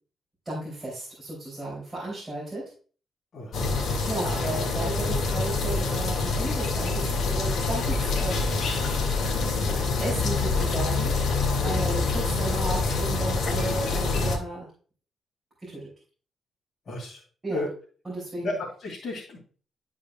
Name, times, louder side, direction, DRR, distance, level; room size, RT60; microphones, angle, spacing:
voice 1, 0.4-2.6 3.8-8.5 9.4-14.7 15.6-15.9 17.4-17.6 18.0-18.6, right 2 dB, 15° right, -6 dB, 3.2 m, -34 dB
voice 2, 3.3-3.9 11.6-11.9 16.9-17.2 17.5-17.7 18.4-19.4, left 2 dB, 45° left, -5 dB, 2.4 m, -34 dB
sound 1, 3.5-14.4, left 3 dB, 60° left, 2.1 m, -26 dB
11.5 x 5.0 x 2.3 m, 0.41 s
cardioid pair, 140°, 0 cm